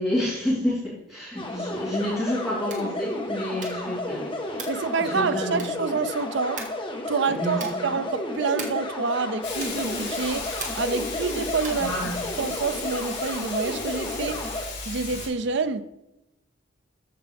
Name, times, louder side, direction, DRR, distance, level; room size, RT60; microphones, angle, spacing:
voice 1, 0.0-4.2 4.5-4.7 5.0-5.8 7.3-7.9 11.8-12.2, left 1 dB, ahead, -14 dB, 3.7 m, -29 dB
sound 1, 1.4-14.6, left 1 dB, 25° left, 1.3 m, -32 dB
sound 2, 2.6-3.0 3.5-3.9 4.5-4.9 5.5-5.9 6.6-6.9 7.5-7.9 8.5-8.9 9.6-9.9 10.6-11.0 11.6-11.9, right 4 dB, 40° right, 2.0 m, -39 dB
voice 2, 4.7-6.6 7.1-10.5 10.8-11.9 12.4-14.4 14.9-15.8, right 4 dB, 60° right, 12 dB, 0.6 m, -27 dB
Hiss, 9.4-15.3, left 4 dB, 55° left, 4.0 m, -35 dB
14.0 x 5.8 x 3.5 m, 0.90 s
head